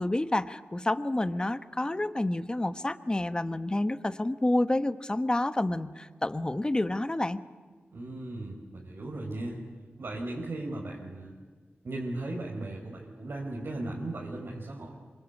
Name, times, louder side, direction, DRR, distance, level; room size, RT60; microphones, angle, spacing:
voice 1, 0.0-7.4, left 1 dB, 20° left, 11 dB, 1.2 m, -29 dB
voice 2, 7.9-9.6 10.0-11.3 11.8-14.9, right 2 dB, 70° right, -3 dB, 4.6 m, -37 dB
27.0 x 25.0 x 8.4 m, 1.5 s
wide cardioid pair, 95°, 4 cm